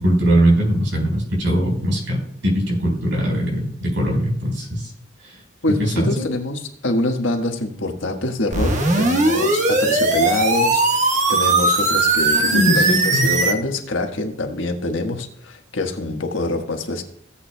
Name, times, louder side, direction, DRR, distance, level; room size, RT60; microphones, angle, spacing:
voice 1, 0.0-4.9 5.2-5.3 5.7-6.3 12.3-13.3, equal, 80° right, -1 dB, 4.6 m, -20 dB
voice 2, 5.6-17.0, left 2 dB, 85° left, 3 dB, 1.4 m, -25 dB
sound 1, 8.5-13.5, right 2 dB, 40° right, 1.3 m, -18 dB
17.0 x 8.4 x 2.2 m, 0.71 s
head